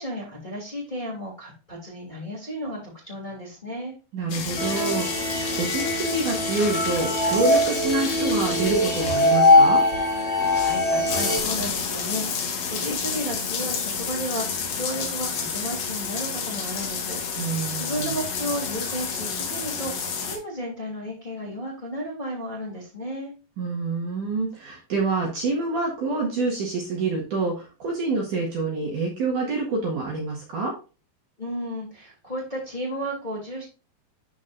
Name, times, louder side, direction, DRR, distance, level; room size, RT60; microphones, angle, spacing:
voice 1, 0.0-2.8 3.1-3.9 10.3-23.3 31.4-33.6, equal, 15° left, -5 dB, 2.5 m, -33 dB
voice 2, 4.1-9.8 17.4-18.2 23.6-30.8, right 3 dB, 55° right, -2 dB, 2.7 m, -27 dB
sound 1, 4.3-20.4, left 5 dB, 60° left, 1.8 m, -30 dB
sound 2, 4.6-11.4, left 1 dB, 10° right, 0.4 m, -22 dB
12.0 x 5.3 x 2.6 m, 0.32 s
omnidirectional pair, 4.9 m